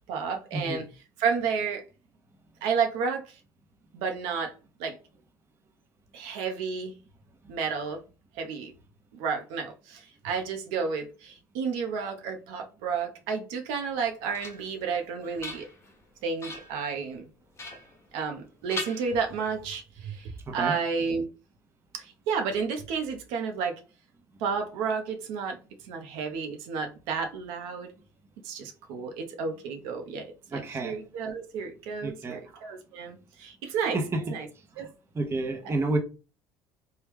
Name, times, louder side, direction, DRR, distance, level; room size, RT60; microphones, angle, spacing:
voice 1, 0.1-0.8 1.2-1.8 2.6-3.4 3.9-4.5 4.8-5.0 6.1-6.9 7.5-8.0 8.4-8.7 9.1-15.7 16.2-17.2 18.1-21.3 21.9-23.8 24.4-25.6 25.8-27.9 28.4-34.0 34.3-34.5 34.8-34.9 35.6-35.7, right 5 dB, 75° right, 0.7 m, -31 dB
sound 1, 13.8-14.8 15.2-16.0 16.4-16.8 17.6-18.4 18.7-19.6, left 3 dB, 25° left, 1.1 m, -40 dB
voice 2, 30.5-31.0 32.0-32.4 33.9-34.2 34.8-34.9 35.1-36.0, right 2 dB, 25° right, 0.8 m, -30 dB
3.1 x 2.2 x 3.5 m
supercardioid pair, 80°, 10 cm